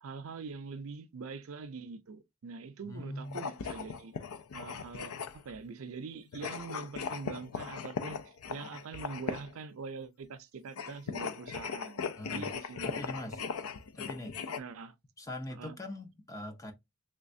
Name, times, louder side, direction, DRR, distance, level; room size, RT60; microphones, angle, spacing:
voice 1, 0.0-4.1 4.5-5.1 5.4-13.0 14.6-14.9 15.5-15.8, right 4 dB, 65° right, 0.5 m, -44 dB
voice 2, 2.8-3.4 12.2-12.5 12.8-13.5 13.9-14.4 15.2-16.7, left 1 dB, 15° left, 0.5 m, -42 dB
sound 1, 3.2-5.6 6.3-9.6 10.7-14.6, left 6 dB, 80° left, 0.4 m, -39 dB
3.3 x 3.1 x 2.6 m
head